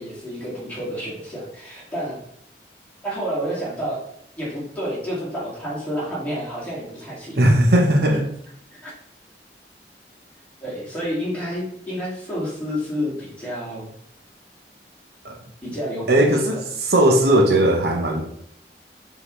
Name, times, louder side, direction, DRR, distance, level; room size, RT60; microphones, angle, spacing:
voice 1, 0.0-2.2 3.0-4.0 4.4-7.4 8.8-8.9 10.6-13.9 15.6-16.6, equal, 10° left, -7 dB, 2.4 m, -29 dB
voice 2, 7.4-8.2 15.2-15.4 16.1-18.3, right 1 dB, 65° right, 2 dB, 0.9 m, -17 dB
7.5 x 4.0 x 3.2 m, 0.71 s
head